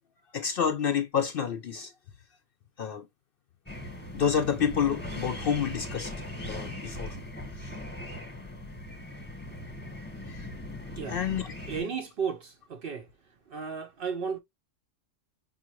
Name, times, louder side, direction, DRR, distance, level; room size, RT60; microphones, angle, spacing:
voice 1, 0.3-1.9 2.8-3.1 4.1-6.1 6.5-7.1 7.6-7.7 10.4-10.5 11.1-11.5, left 7 dB, 60° left, 0.6 m, -28 dB
sound 1, 3.7-11.8, left 1 dB, 10° left, 1.1 m, -39 dB
voice 2, 11.7-13.1 13.5-14.4, right 6 dB, 60° right, 0.6 m, -34 dB
5.5 x 2.4 x 3.0 m
omnidirectional pair, 1.3 m